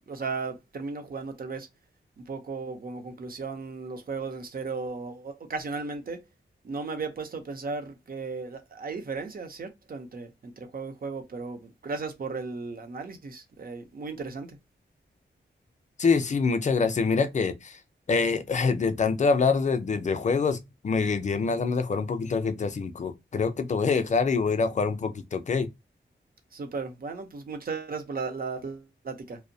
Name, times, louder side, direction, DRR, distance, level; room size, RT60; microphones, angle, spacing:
voice 1, 0.1-1.7 2.3-6.2 6.6-14.5 26.5-29.4, right 4 dB, 50° right, 0.6 m, -35 dB
voice 2, 16.0-17.8 18.1-25.7, left 4 dB, 40° left, 0.4 m, -25 dB
2.5 x 2.0 x 2.6 m
wide cardioid pair, 130°, 19 cm